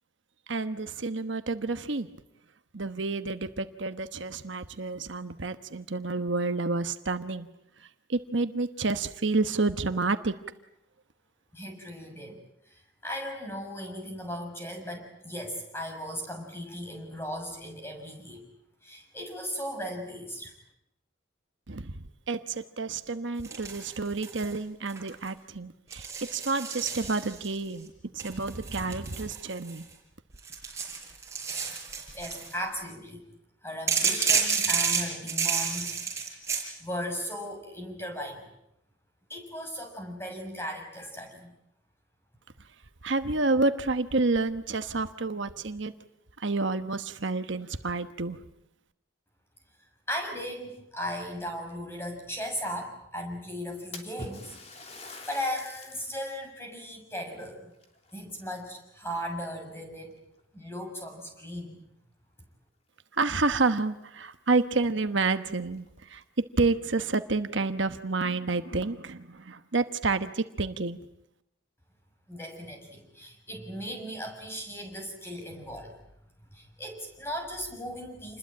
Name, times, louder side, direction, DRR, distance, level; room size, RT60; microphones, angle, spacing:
voice 1, 0.5-2.1 2.7-7.5 8.1-10.3 21.7-21.9 22.3-29.9 43.0-45.9 46.4-48.4 63.1-71.0, right 3 dB, 65° right, 9 dB, 1.2 m, -29 dB
voice 2, 11.5-18.4 18.8-20.5 32.1-33.2 33.6-35.9 36.8-38.5 39.3-41.5 50.1-54.9 55.2-57.7 58.1-60.2 60.5-61.8 72.3-76.0 76.5-78.4, equal, 10° left, 3 dB, 6.6 m, -37 dB
sound 1, 23.4-24.5 24.9-25.3 25.9-27.6 28.2-29.9 30.4-32.5 33.9-36.7, right 6 dB, 15° right, 5.6 m, -30 dB
Splash splatter, 53.9-56.2 56.7-56.8 57.7-58.8 59.1-59.6 60.4-60.5 61.0-61.1 63.2-63.3 63.7-63.8 64.3-64.4 64.8-64.9 65.7-66.2, left 2 dB, 30° left, 3.2 m, -45 dB
28.5 x 21.0 x 8.8 m, 0.82 s
head